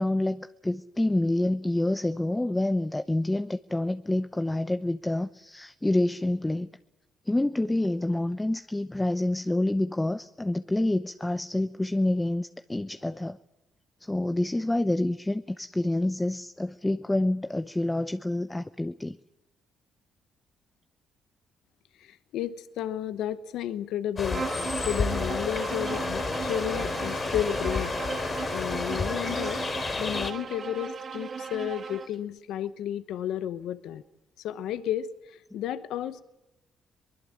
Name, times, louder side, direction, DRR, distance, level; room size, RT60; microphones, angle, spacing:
voice 1, 0.0-6.7 7.3-13.4 14.0-19.2, left 1 dB, 10° left, 0.8 m, -27 dB
voice 2, 22.0-24.4 24.8-27.9 28.5-29.6 30.0-34.0 34.4-36.2, left 10 dB, 85° left, 0.9 m, -32 dB
sound 1, 24.2-30.3, left 3 dB, 35° left, 4.0 m, -31 dB
Bowed string instrument, 24.2-32.1, right 6 dB, 45° right, 1.8 m, -37 dB
23.5 x 20.5 x 8.7 m
cardioid pair, 90°, 0 cm